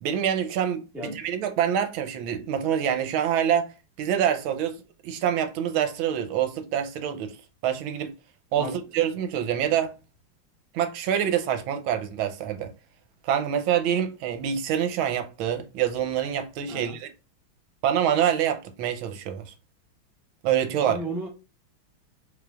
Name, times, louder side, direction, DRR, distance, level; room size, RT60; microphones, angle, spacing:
voice 1, 0.0-3.7 4.0-7.4 7.6-8.1 8.5-9.9 10.7-12.7 13.2-17.1 17.8-19.4 20.4-21.0, right 9 dB, 80° right, 1.4 m, -26 dB
voice 2, 20.7-21.3, right 2 dB, ahead, 0.3 m, -34 dB
5.0 x 3.3 x 2.3 m
omnidirectional pair, 2.3 m